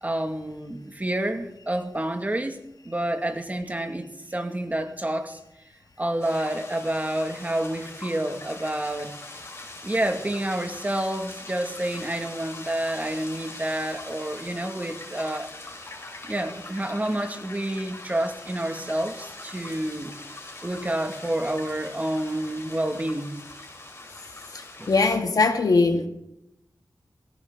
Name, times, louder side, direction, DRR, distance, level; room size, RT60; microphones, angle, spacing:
voice 1, 0.0-2.6 2.8-5.4 6.0-9.1 9.8-15.5 16.2-20.1 20.6-23.3 24.8-24.9, right 1 dB, 25° right, 5 dB, 2.3 m, -29 dB
sound 1, 6.2-25.2, left 2 dB, 40° left, 5.2 m, -42 dB
voice 2, 24.5-26.1, left 3 dB, 75° left, 6 dB, 1.9 m, -21 dB
19.5 x 17.0 x 4.0 m, 0.82 s
wide cardioid pair, 65°, 7 cm